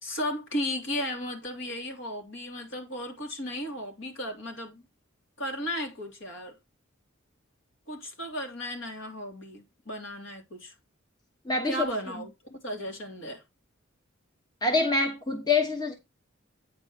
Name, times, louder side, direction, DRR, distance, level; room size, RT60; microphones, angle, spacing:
voice 1, 0.0-4.8 5.4-6.5 7.9-10.7 11.6-13.4, equal, 65° left, 3.0 m, -35 dB
voice 2, 11.5-11.8 14.6-15.9, left 3 dB, 20° left, 1.1 m, -25 dB
9.1 x 4.2 x 6.0 m
head